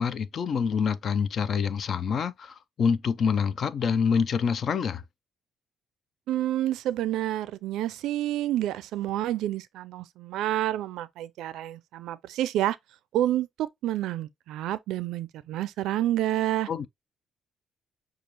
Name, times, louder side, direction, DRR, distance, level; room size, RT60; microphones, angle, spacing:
voice 1, 0.0-5.0 16.7-16.9, left 6 dB, 55° left, 0.5 m, -26 dB
voice 2, 6.3-12.8 13.1-16.7, right 13 dB, 90° right, 0.4 m, -29 dB
6.5 x 2.4 x 2.9 m
cardioid pair, 90°, 0 cm